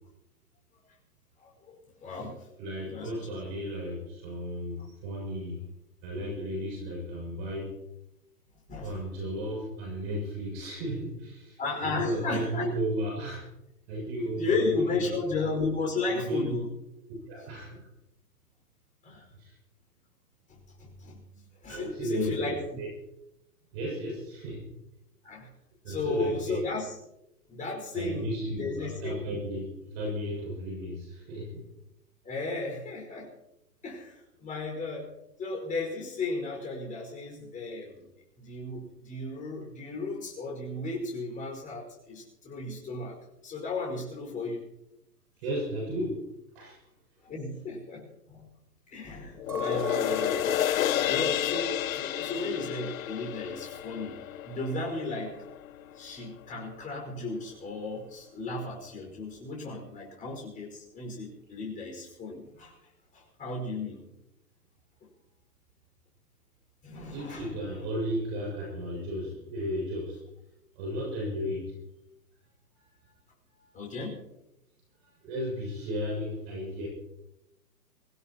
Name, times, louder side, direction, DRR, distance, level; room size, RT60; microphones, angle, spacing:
voice 1, 1.4-2.6 2.9-3.2 8.7-8.9 11.6-12.7 14.4-16.7 19.0-19.2 20.5-21.2 21.6-22.8 25.2-25.5 25.9-27.0 27.5-29.2 32.2-33.3 33.8-35.1 35.4-38.1 38.4-43.2 43.4-44.7 47.2-48.5 48.9-50.5 51.1-55.4 55.9-62.8 63.1-64.0 66.8-67.6 73.7-74.2, left 3 dB, 15° left, 0 dB, 5.5 m, -34 dB
voice 2, 2.6-5.6 6.0-7.8 8.8-13.5 13.9-15.0 16.1-16.4 17.3-17.9 19.4-19.6 21.7-22.9 23.7-24.7 25.8-26.6 27.9-29.7 29.9-31.6 45.4-46.3 46.5-46.8 67.1-70.2 70.8-71.7 73.5-73.7 75.2-76.9, equal, 40° right, -1 dB, 7.3 m, -34 dB
sound 1, 49.4-56.0 56.4-56.5, left 12 dB, 55° left, 0.6 m, -31 dB
Chink clink, 49.5-53.9 54.1-54.9, right 3 dB, 75° right, 6.9 m, -40 dB
25.0 x 16.5 x 3.0 m, 0.86 s
hypercardioid pair, 135°, 49 cm